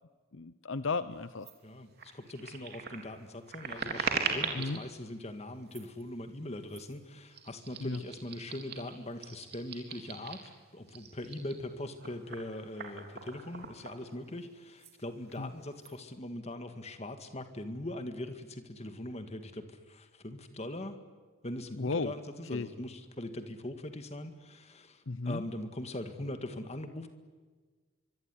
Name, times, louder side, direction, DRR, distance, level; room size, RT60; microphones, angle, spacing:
voice 1, 0.3-1.5 4.5-4.8 7.8-8.0 15.4-15.5 21.7-22.1 22.4-22.7 25.1-25.4, left 3 dB, 65° left, 14 dB, 0.7 m, -34 dB
sound 1, 1.4-1.5 1.9-4.8 5.6-6.0 6.7-6.9 7.3-10.5 10.9-14.5 14.8-14.9 15.2-15.9, right 5 dB, 50° right, 3.7 m, -40 dB
voice 2, 1.6-21.0 21.4-27.1, left 1 dB, 30° left, 8 dB, 2.0 m, -41 dB
24.5 x 24.0 x 9.9 m, 1.4 s
head